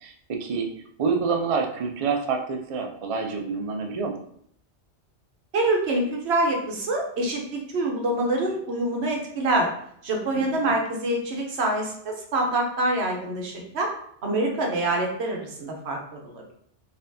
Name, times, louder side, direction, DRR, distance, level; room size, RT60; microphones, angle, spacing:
voice 1, 0.0-0.7 1.0-4.2 10.3-10.7, right 5 dB, 55° right, 3 dB, 0.4 m, -27 dB
voice 2, 5.5-9.7 10.0-13.9 14.2-16.5, right 1 dB, 70° right, 1 dB, 1.1 m, -26 dB
4.1 x 2.7 x 2.6 m, 0.66 s
omnidirectional pair, 1.1 m